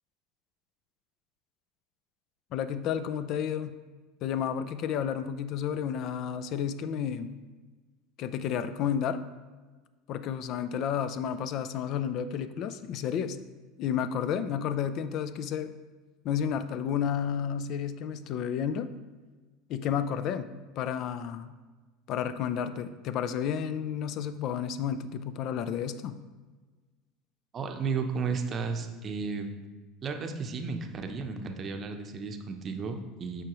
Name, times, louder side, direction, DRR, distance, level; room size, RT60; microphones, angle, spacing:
voice 1, 2.5-3.7 4.2-7.4 8.2-9.3 10.1-13.4 13.8-15.7 16.2-18.9 19.7-20.5 20.8-21.5 22.1-26.2, left 8 dB, 55° left, 12 dB, 0.4 m, -31 dB
voice 2, 27.5-29.5 30.0-33.4, right 5 dB, 35° right, 5 dB, 0.7 m, -33 dB
7.7 x 4.9 x 3.0 m, 1.3 s
supercardioid pair, 110°, 0 cm